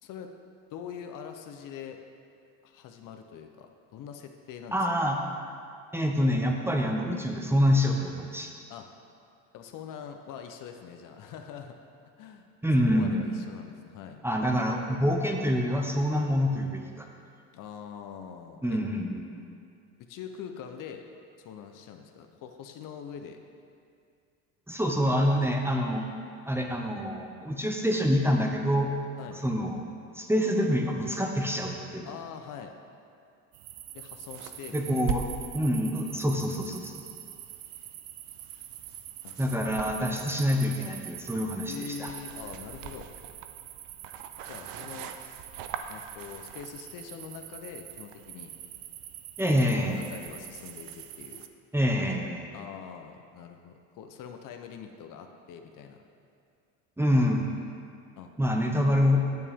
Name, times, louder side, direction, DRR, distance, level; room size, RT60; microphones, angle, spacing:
voice 1, 0.7-2.0 2.6-4.8 8.7-8.9 9.5-11.7 12.2-12.5 12.9-14.2 17.5-18.8 20.1-21.0 21.4-23.4 29.2-29.4 32.0-32.7 33.9-35.1 39.2-39.3 41.7-43.1 44.4-45.1 45.9-48.5 49.9-51.5 52.5-56.0 58.2-58.3, left 8 dB, 55° left, 5 dB, 0.8 m, -43 dB
voice 2, 4.7-5.2 5.9-8.5 12.6-13.3 14.2-17.1 18.6-19.2 24.7-26.1 26.4-28.9 29.3-29.8 30.1-32.1 34.7-35.2 35.5-37.0 39.4-42.1 49.4-50.0 51.7-52.5 57.0-57.5 58.4-59.2, equal, 5° right, 1 dB, 0.9 m, -26 dB
sound 1, 33.5-51.5, right 9 dB, 60° right, 0.7 m, -41 dB
9.2 x 8.3 x 3.6 m, 2.4 s
supercardioid pair, 85°, 38 cm